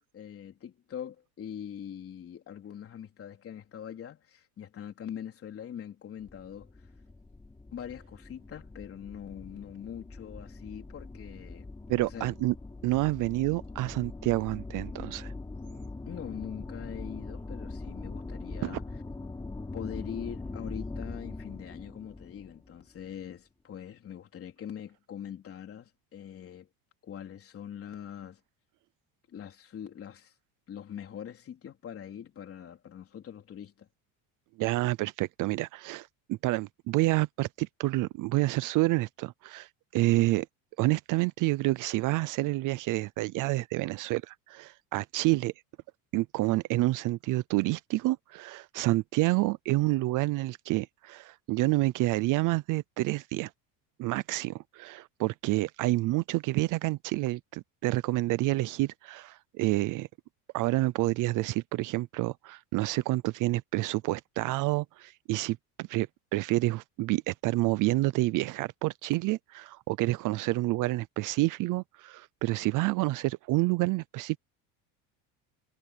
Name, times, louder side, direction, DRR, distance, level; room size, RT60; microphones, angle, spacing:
voice 1, 0.0-6.7 7.7-11.7 12.0-12.3 16.1-18.8 19.7-26.7 27.0-28.4 29.3-30.3 30.7-33.9, left 9 dB, 30° left, 3.9 m, -42 dB
sound 1, 6.2-23.2, left 3 dB, 10° left, 4.7 m, -42 dB
voice 2, 11.9-12.5 12.8-15.3 18.6-18.8 34.6-40.5 40.8-45.5 46.1-53.5 54.0-60.1 60.5-74.4, right 19 dB, 45° right, 0.6 m, -28 dB
cardioid pair, 150°, 43 cm